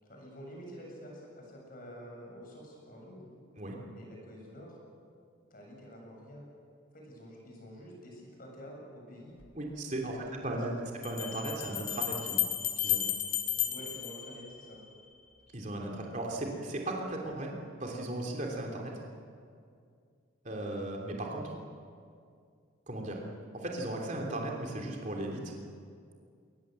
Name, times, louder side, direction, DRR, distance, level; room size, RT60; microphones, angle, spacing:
voice 1, 0.0-3.4 3.9-4.8 5.5-6.5 6.9-9.4 10.2-10.8 13.5-14.8, equal, 45° left, -1 dB, 7.4 m, -48 dB
Bell, 9.4-9.5 11.0-15.0, left 11 dB, 90° left, 2.5 m, -33 dB
voice 2, 9.5-10.7 11.0-12.4 12.8-13.0 15.5-18.9 20.4-21.5 22.9-23.2 23.5-25.5, right 1 dB, 35° right, -1 dB, 3.1 m, -36 dB
22.5 x 19.0 x 7.7 m, 2.3 s
head